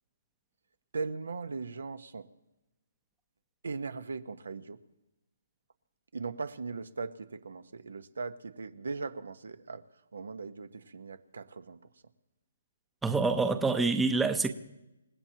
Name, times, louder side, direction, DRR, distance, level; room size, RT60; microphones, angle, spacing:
voice 1, 0.9-2.3 3.6-4.8 6.1-9.8 10.1-11.8, right 4 dB, 80° right, 1.1 m, -39 dB
voice 2, 13.0-14.5, right 3 dB, 5° right, 0.7 m, -26 dB
28.5 x 16.5 x 2.9 m
hypercardioid pair, 155°, 0 cm